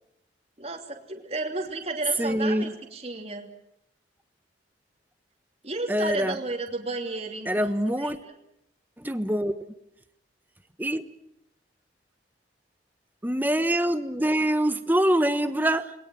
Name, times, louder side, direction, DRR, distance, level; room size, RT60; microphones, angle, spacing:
voice 1, 0.6-3.5 5.6-7.7 8.0-8.3, right 2 dB, 35° right, 2 dB, 2.9 m, -33 dB
voice 2, 2.2-2.7 5.9-6.4 7.4-8.2 9.0-9.6 10.8-11.0 13.2-15.9, right 1 dB, 10° right, 10 dB, 1.2 m, -24 dB
28.0 x 21.5 x 7.8 m, 0.78 s
head